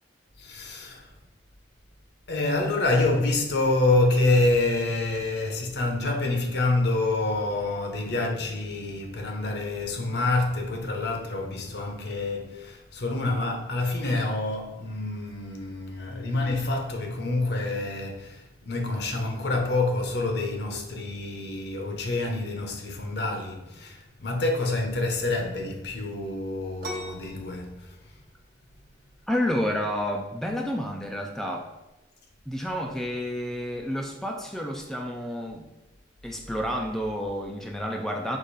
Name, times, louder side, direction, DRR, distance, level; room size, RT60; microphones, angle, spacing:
voice 1, 0.4-1.1 2.3-28.0, left 2 dB, 65° left, 0.8 m, -27 dB
sound 1, 26.8-34.2, right 1 dB, 55° right, 1.0 m, -45 dB
voice 2, 29.3-31.7 32.5-35.7 36.2-38.4, equal, ahead, 0.3 m, -30 dB
5.0 x 2.5 x 4.0 m
head